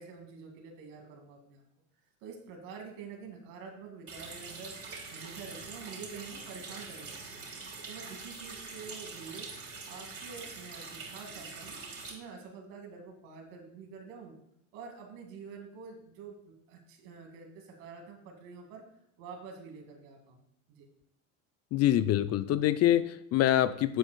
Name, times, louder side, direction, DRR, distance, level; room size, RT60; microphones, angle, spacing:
voice 1, 0.0-1.6 2.2-4.7 5.1-7.5 7.9-9.5 9.9-11.8 12.1-14.3 14.7-18.8 19.2-20.9, right 5 dB, 70° right, 3 dB, 2.3 m, -47 dB
Water tap faucet, 4.1-12.1, right 4 dB, 35° right, 2.8 m, -44 dB
voice 2, 21.7-24.0, left 12 dB, 40° left, 14 dB, 0.4 m, -25 dB
11.5 x 7.5 x 2.3 m, 0.75 s
hypercardioid pair, 85°, 39 cm